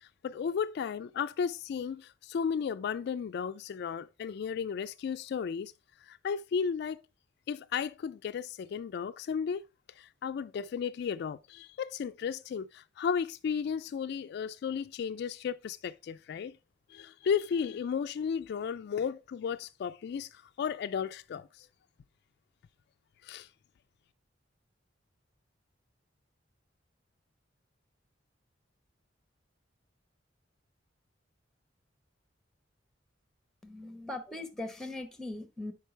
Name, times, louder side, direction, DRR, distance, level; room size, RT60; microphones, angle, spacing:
voice 1, 0.0-5.7 6.1-7.0 7.5-9.6 10.0-16.6 16.9-21.7 23.2-23.5, left 6 dB, 60° left, 0.3 m, -34 dB
voice 2, 33.6-35.7, left 2 dB, 5° left, 0.9 m, -40 dB
9.1 x 5.1 x 3.2 m
head